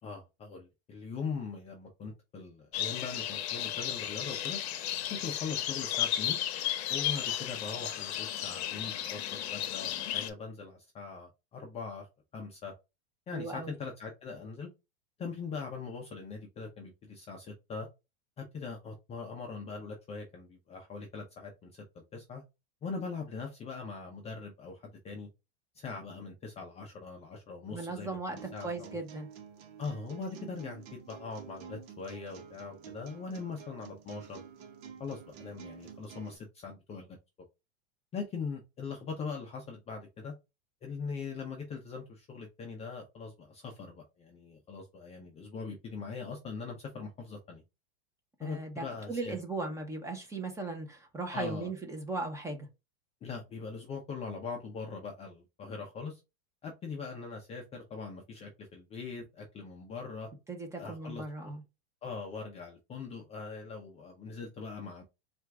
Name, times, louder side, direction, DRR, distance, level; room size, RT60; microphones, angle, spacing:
voice 1, 0.0-4.6 5.1-6.4 6.9-12.1 12.3-12.7 13.3-14.7 15.2-17.9 18.4-22.4 22.8-25.3 25.7-29.0 29.8-34.4 35.0-37.2 38.1-40.3 40.8-47.6 48.4-49.4 51.3-51.7 53.2-56.2 56.6-60.3 60.8-61.6 62.0-65.0, left 4 dB, 20° left, 0.6 m, -41 dB
sound 1, 2.7-10.3, left 11 dB, 70° left, 0.8 m, -34 dB
voice 2, 13.3-13.8 27.7-28.4 28.6-29.3 48.4-52.7 60.5-61.6, right 3 dB, 10° right, 1.0 m, -37 dB
sound 2, 28.4-36.4, right 7 dB, 65° right, 1.1 m, -50 dB
4.3 x 2.5 x 3.4 m
supercardioid pair, 145°, 33 cm